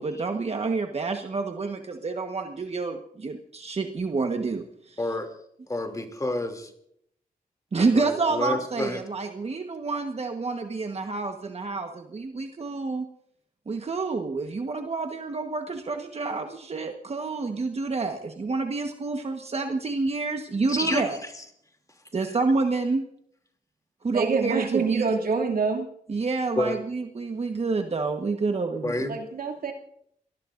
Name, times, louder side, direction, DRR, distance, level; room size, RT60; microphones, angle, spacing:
voice 1, 0.0-5.0 7.7-13.1 13.7-21.2 22.1-23.0 24.0-25.0 26.1-29.2, right 3 dB, 45° right, 4 dB, 1.3 m, -28 dB
voice 2, 5.0-5.3 5.7-6.7 7.9-9.0 20.7-21.0 26.6-26.8 28.8-29.1, left 2 dB, 25° left, 5 dB, 2.8 m, -29 dB
voice 3, 24.1-25.9 29.1-29.7, right 5 dB, 80° right, 1 dB, 2.6 m, -26 dB
27.0 x 19.0 x 2.6 m, 0.71 s
cardioid pair, 85°, 15 cm